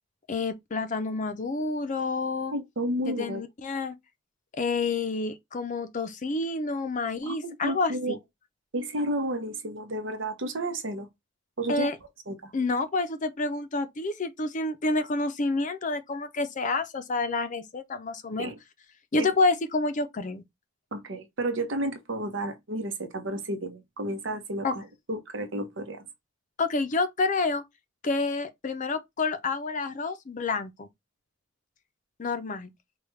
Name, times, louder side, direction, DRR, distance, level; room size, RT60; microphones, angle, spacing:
voice 1, 0.3-2.5 3.1-3.9 4.6-8.2 11.7-12.0 12.5-18.5 19.1-20.4 24.6-24.8 26.6-27.6 28.0-30.9 32.2-32.7, left 3 dB, 40° left, 0.5 m, -28 dB
voice 2, 2.5-3.4 7.2-8.2 8.7-11.1 11.6-11.9 12.3-12.5 18.4-18.6 19.2-19.3 20.9-26.0, right 1 dB, 70° right, 0.9 m, -32 dB
4.7 x 2.3 x 3.1 m
head